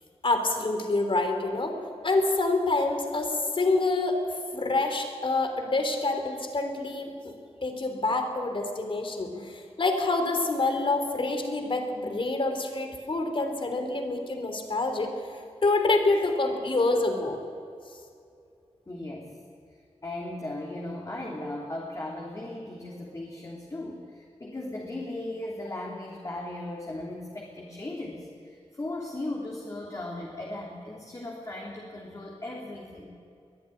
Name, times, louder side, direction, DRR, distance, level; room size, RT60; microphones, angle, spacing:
voice 1, 0.2-1.8 2.0-4.2 4.5-7.3 7.6-15.1 15.6-17.4, left 2 dB, 55° left, 5 dB, 3.3 m, -27 dB
voice 2, 18.9-19.4 20.0-33.1, left 1 dB, 30° left, -2 dB, 3.0 m, -37 dB
22.5 x 13.0 x 10.0 m, 2.5 s
wide cardioid pair, 100°, 11 cm